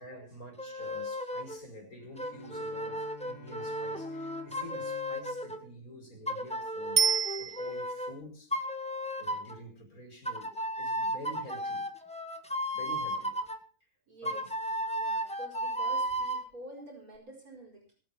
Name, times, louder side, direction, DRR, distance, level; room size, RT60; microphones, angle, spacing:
voice 1, 0.0-8.8 9.2-11.9 12.7-13.4 14.2-14.5, equal, 80° left, 5.8 m, -48 dB
sound 1, 0.6-1.6 2.2-5.6 6.3-8.1 8.5-9.6 10.3-13.6 14.3-16.5, equal, 5° left, 1.8 m, -34 dB
Bowed string instrument, 2.0-6.9, left 3 dB, 25° left, 4.6 m, -52 dB
Bicycle bell, 7.0-8.1 17.2-17.3, right 7 dB, 45° right, 1.1 m, -28 dB
voice 2, 14.1-14.5 14.9-17.9, right 1 dB, 80° right, 5.5 m, -48 dB
22.0 x 8.9 x 5.6 m
omnidirectional pair, 1.5 m